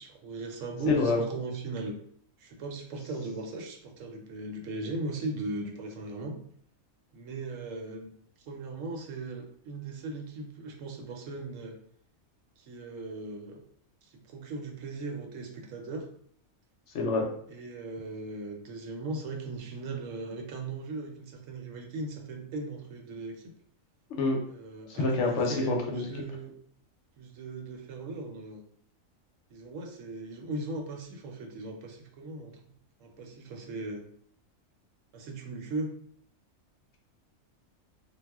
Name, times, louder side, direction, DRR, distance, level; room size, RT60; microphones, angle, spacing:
voice 1, 0.0-2.0 2.4-6.4 7.1-8.1 8.4-11.8 12.6-13.6 14.0-16.0 17.5-23.5 24.5-26.5 27.2-28.6 29.5-32.6 33.0-34.0 35.1-35.9, right 2 dB, 75° right, 1 dB, 0.9 m, -38 dB
voice 2, 0.9-1.2 16.9-17.3 24.2-24.4 24.9-26.1, left 3 dB, 65° left, 1 dB, 0.8 m, -26 dB
2.3 x 2.0 x 3.3 m, 0.62 s
omnidirectional pair, 1.4 m